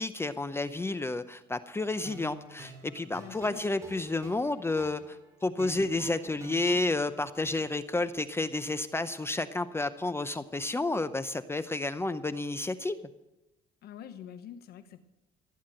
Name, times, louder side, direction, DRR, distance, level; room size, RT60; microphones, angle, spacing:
voice 1, 0.0-13.0, left 2 dB, 15° left, 12 dB, 0.7 m, -31 dB
sound 1, 1.8-6.8, right 2 dB, 15° right, 4.2 m, -49 dB
voice 2, 3.2-3.6 13.8-15.0, left 9 dB, 65° left, 10 dB, 1.0 m, -46 dB
15.5 x 9.4 x 7.8 m, 0.97 s
cardioid pair, 110°, 17 cm